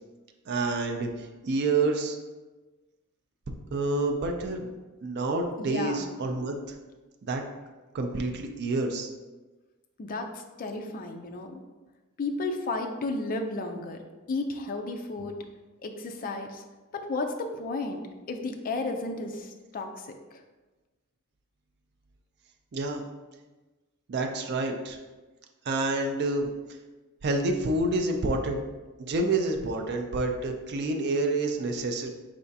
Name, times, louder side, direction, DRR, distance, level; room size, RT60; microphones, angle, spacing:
voice 1, 0.5-1.1 1.4-2.2 3.7-4.7 5.0-6.6 7.2-7.4 7.9-9.1 22.7-23.0 24.1-25.0 25.7-26.5 27.2-28.6 29.0-32.1, right 2 dB, 50° right, 3 dB, 0.4 m, -28 dB
voice 2, 5.6-6.1 10.0-11.6 12.2-14.0 14.3-15.3 15.8-16.6 16.9-18.0 18.3-20.4, left 3 dB, 40° left, 4 dB, 0.4 m, -33 dB
4.8 x 3.3 x 2.7 m, 1.2 s
head